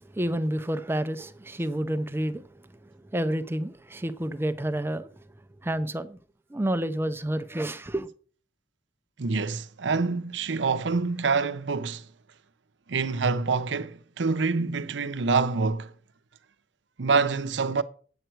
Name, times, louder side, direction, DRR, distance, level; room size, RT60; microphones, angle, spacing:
voice 1, 0.1-2.4 3.1-5.1 5.6-6.2 6.5-8.1, right 1 dB, 15° right, 0.5 m, -29 dB
voice 2, 9.2-12.1 12.9-15.9 17.0-17.8, right 4 dB, 75° right, 0.7 m, -26 dB
9.0 x 7.9 x 4.6 m
head